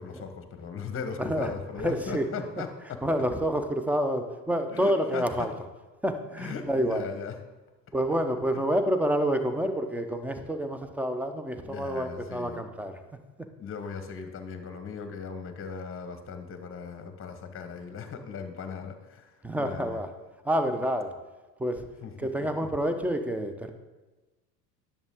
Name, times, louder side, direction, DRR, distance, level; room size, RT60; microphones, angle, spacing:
voice 1, 0.0-3.0 4.7-5.5 6.4-7.4 11.6-12.6 13.6-20.0 22.0-22.3 22.6-22.7, left 5 dB, 25° left, 7 dB, 1.2 m, -38 dB
voice 2, 1.2-1.5 1.8-2.3 3.0-5.5 6.0-7.0 7.9-13.0 19.4-20.1 20.4-21.2 21.6-21.9 22.2-23.7, equal, 5° right, 7 dB, 0.7 m, -28 dB
10.5 x 7.0 x 3.7 m, 1.2 s
hypercardioid pair, 75°, 49 cm